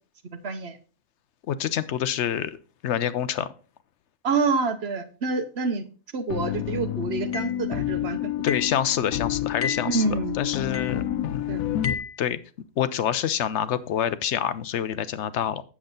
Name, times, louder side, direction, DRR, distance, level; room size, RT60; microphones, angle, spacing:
voice 1, 0.4-0.7 4.2-5.8 6.1-8.3 9.9-10.4 11.5-11.6, right 4 dB, 55° right, 8 dB, 1.1 m, -27 dB
voice 2, 1.5-2.6 2.8-3.5 8.4-11.1 11.3-12.4 12.8-15.6, left 9 dB, 65° left, 14 dB, 0.9 m, -27 dB
sound 1, 6.3-11.9, left 11 dB, 85° left, 1.0 m, -29 dB
sound 2, 7.3-7.6 8.5-8.8 9.6-10.0 10.7-11.0 11.8-12.2, left 5 dB, 30° left, 0.8 m, -32 dB
8.7 x 7.2 x 3.8 m, 0.37 s
omnidirectional pair, 1.4 m